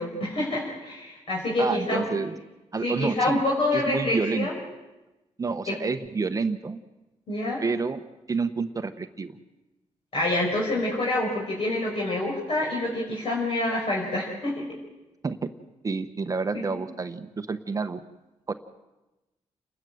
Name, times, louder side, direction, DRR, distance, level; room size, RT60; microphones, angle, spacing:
voice 1, 0.0-2.1 2.8-4.6 5.7-5.8 7.3-7.6 10.1-14.7 16.5-16.6, left 2 dB, 50° left, -4 dB, 5.9 m, -27 dB
voice 2, 1.6-2.4 2.7-3.4 3.7-4.5 5.4-6.8 7.6-8.0 8.3-9.3 15.2-15.5 15.8-18.0 18.5-18.6, right 4 dB, 30° right, 8 dB, 0.9 m, -29 dB
29.5 x 13.0 x 7.9 m, 1.1 s
cardioid pair, 125°, 12 cm